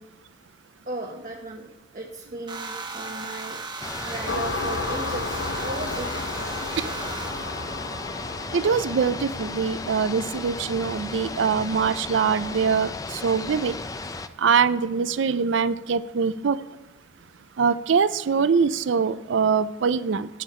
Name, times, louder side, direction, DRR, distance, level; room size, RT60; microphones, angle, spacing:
voice 1, 0.8-3.6 4.0-6.2, right 2 dB, 40° right, 0 dB, 1.0 m, -36 dB
sound 1, 2.5-8.6, right 3 dB, 25° right, 1.0 m, -37 dB
sound 2, 3.8-14.3, left 3 dB, 20° left, 0.4 m, -35 dB
sound 3, 4.3-13.5, left 3 dB, 65° left, 0.7 m, -35 dB
voice 2, 8.5-12.9 13.2-13.7 14.4-16.6 17.6-20.3, right 6 dB, 70° right, 15 dB, 0.4 m, -23 dB
16.5 x 7.4 x 4.3 m, 0.97 s
head